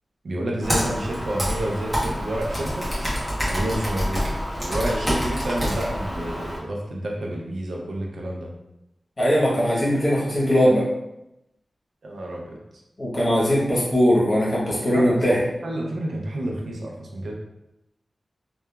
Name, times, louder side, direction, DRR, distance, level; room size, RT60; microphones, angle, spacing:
voice 1, 0.2-2.9 3.5-4.3 4.6-8.5 12.0-12.6 14.9-15.2 15.6-17.3, right 1 dB, 80° right, -1 dB, 0.5 m, -29 dB
Computer keyboard, 0.6-6.6, equal, 10° right, 0.9 m, -27 dB
voice 2, 9.2-10.9 13.0-15.4, equal, 45° left, -5 dB, 0.9 m, -20 dB
2.8 x 2.3 x 2.2 m, 0.88 s
wide cardioid pair, 85°, 0 cm